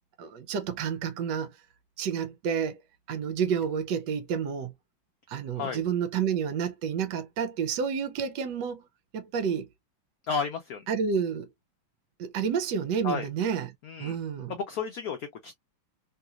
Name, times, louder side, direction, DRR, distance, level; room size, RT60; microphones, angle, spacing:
voice 1, 0.2-1.5 2.0-2.8 3.1-4.7 5.3-8.9 9.1-9.7 10.9-11.5 12.2-13.7 14.0-14.6, right 7 dB, 70° right, 1.2 m, -30 dB
voice 2, 10.3-10.9 13.0-13.3 13.8-14.2 14.5-15.6, left 5 dB, 80° left, 0.8 m, -32 dB
3.3 x 2.9 x 2.4 m
omnidirectional pair, 2.2 m